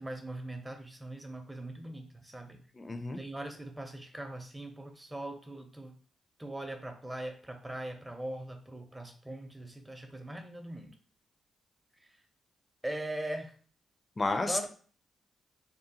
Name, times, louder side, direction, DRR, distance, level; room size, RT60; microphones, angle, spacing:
voice 1, 0.0-2.6 3.1-5.9 6.4-11.0 12.8-13.5 14.4-14.7, right 1 dB, 15° right, 5 dB, 0.6 m, -40 dB
voice 2, 2.8-3.2 14.2-14.7, left 2 dB, 35° left, 8 dB, 0.4 m, -31 dB
2.8 x 2.0 x 2.7 m, 0.43 s
hypercardioid pair, 45°, 0 cm